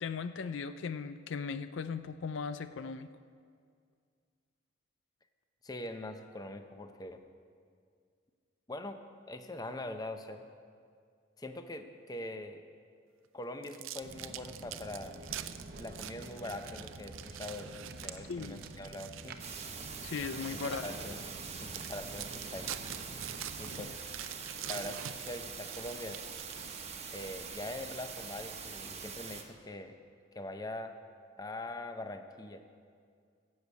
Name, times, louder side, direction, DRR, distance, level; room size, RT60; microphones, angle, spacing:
voice 1, 0.0-3.1 18.3-18.6 20.0-20.8, left 5 dB, 70° left, 12 dB, 0.4 m, -37 dB
voice 2, 5.6-7.2 8.7-9.0 9.3-10.4 11.4-12.6 13.3-15.2 15.7-19.4 20.5-21.2 21.6-22.8 23.6-23.9 24.7-26.2 27.1-29.9 30.3-30.9 31.4-32.6, left 1 dB, 20° left, 7 dB, 0.6 m, -43 dB
sound 1, 13.6-20.1 20.6-20.8 21.3-21.4 21.7-27.2, right 11 dB, 80° right, 0.5 m, -45 dB
Walk footsteps, 14.0-23.9, right 2 dB, 50° right, 0.8 m, -49 dB
sound 2, 19.4-29.4, right 5 dB, 30° right, 1.1 m, -43 dB
16.0 x 6.9 x 8.3 m, 2.2 s
head